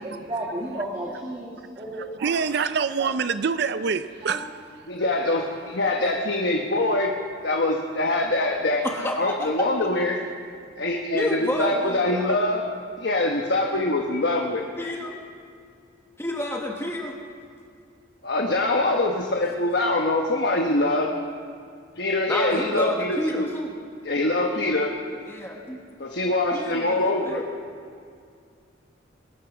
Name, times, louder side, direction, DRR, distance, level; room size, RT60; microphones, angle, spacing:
voice 1, 0.0-2.3 4.2-4.4, right 1 dB, 25° right, 1.8 m, -33 dB
voice 2, 2.2-4.4, right 5 dB, 55° right, 0.4 m, -25 dB
voice 3, 4.9-7.1 7.4-10.2 10.8-12.6 13.0-14.6 18.2-21.1 22.0-23.5 24.0-24.9 26.0-27.4, left 2 dB, 60° left, 1.1 m, -24 dB
voice 4, 8.8-9.7 11.1-12.4 14.8-15.2 16.2-17.2 22.3-23.7 25.3-25.8 26.5-27.4, left 1 dB, 15° left, 1.2 m, -30 dB
22.0 x 9.2 x 6.1 m
head